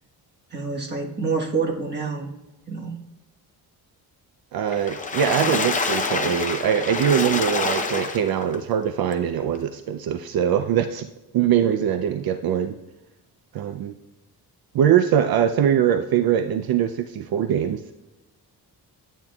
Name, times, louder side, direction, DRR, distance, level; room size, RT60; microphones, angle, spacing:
voice 1, 0.5-2.3 2.7-3.0, right 4 dB, 25° right, -1 dB, 1.3 m, -27 dB
voice 2, 4.5-11.1 11.3-12.8 13.5-13.9 14.7-17.8, right 9 dB, 65° right, 8 dB, 0.5 m, -22 dB
Water / Splash splatter, 4.7-8.6 9.1-9.2 9.5-9.6, left 4 dB, 20° left, 0.6 m, -26 dB
12.0 x 9.0 x 2.3 m, 1.0 s
wide cardioid pair, 180°, 39 cm